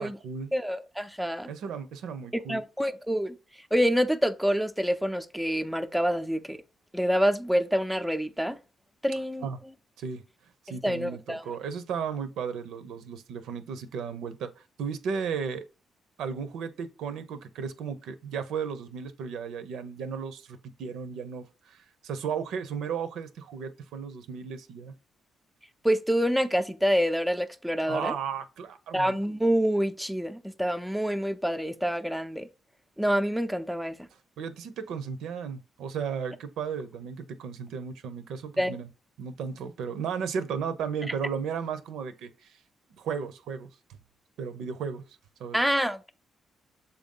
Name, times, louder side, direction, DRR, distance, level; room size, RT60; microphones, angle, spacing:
voice 1, 0.0-0.5 1.5-2.6 9.4-9.6 10.0-10.2 10.6-15.6 16.2-24.9 27.9-29.2 34.4-38.9 39.2-42.6 43.0-43.7 44.4-45.0 45.4-45.6, right 6 dB, 80° right, 0.7 m, -35 dB
voice 2, 0.5-1.5 2.3-3.4 3.7-6.6 6.9-8.6 9.0-9.5 10.7-11.4 25.8-28.1 28.9-32.5 33.0-34.0 38.6-38.7 45.5-46.1, equal, ahead, 0.5 m, -27 dB
6.9 x 2.7 x 5.3 m
cardioid pair, 85°, 0 cm